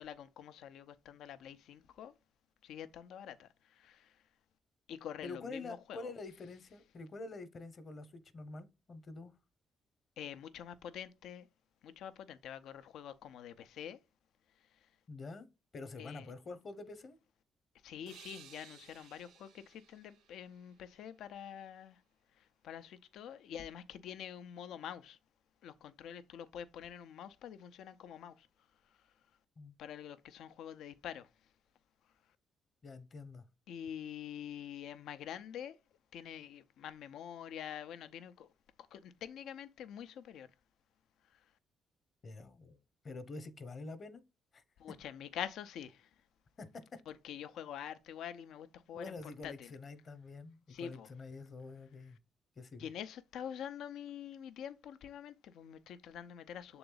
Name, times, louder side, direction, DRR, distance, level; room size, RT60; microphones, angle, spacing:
voice 1, 0.0-2.1 2.6-4.2 4.9-6.1 10.2-11.5 11.8-14.0 14.6-14.9 16.0-16.3 17.8-22.0 22.3-25.2 25.6-28.5 28.8-29.1 29.8-31.3 33.7-35.8 36.1-38.5 38.9-40.5 41.2-41.5 44.8-46.2 47.1-49.7 50.7-51.1 52.8-56.8, left 9 dB, 80° left, 0.6 m, -46 dB
voice 2, 5.2-9.3 15.1-15.5 15.7-17.2 29.6-29.7 32.8-33.4 42.2-42.8 43.0-44.2 44.5-44.6 46.6-47.0 48.9-52.2 52.6-52.9, left 3 dB, 45° left, 1.0 m, -47 dB
sound 1, 18.1-21.6, right 7 dB, 85° right, 1.8 m, -58 dB
7.0 x 3.9 x 3.9 m
cardioid pair, 90°, 0 cm